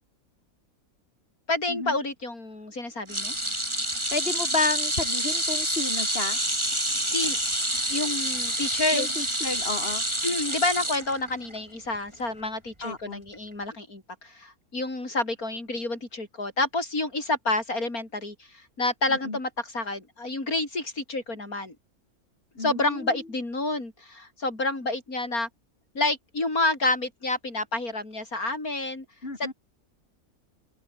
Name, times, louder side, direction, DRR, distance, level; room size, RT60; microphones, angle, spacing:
voice 1, 1.5-3.3 7.1-7.4 7.9-9.1 10.2-21.8 22.6-25.5 25.9-29.0 29.4-29.5, left 2 dB, 80° left, 6.2 m, -29 dB
sound 1, 3.1-11.6 11.9-12.1 13.3-13.4, right 1 dB, 20° right, 7.0 m, -28 dB
voice 2, 4.1-6.4 8.9-10.0 12.8-13.2 19.1-19.4 22.6-23.2 29.2-29.5, left 3 dB, 40° left, 4.3 m, -31 dB
open air
omnidirectional pair, 1.5 m